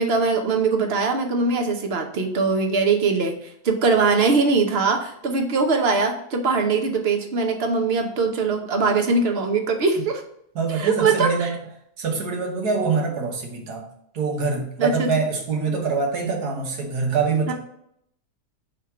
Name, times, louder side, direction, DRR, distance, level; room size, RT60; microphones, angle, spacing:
voice 1, 0.0-3.4 3.6-10.2 10.7-11.5 14.8-15.1 17.5-17.6, right 4 dB, 45° right, 4 dB, 1.0 m, -21 dB
voice 2, 10.6-11.5 12.0-13.9 14.1-17.5, right 4 dB, 80° right, 1 dB, 1.7 m, -24 dB
5.2 x 3.5 x 5.7 m, 0.70 s
omnidirectional pair, 1.7 m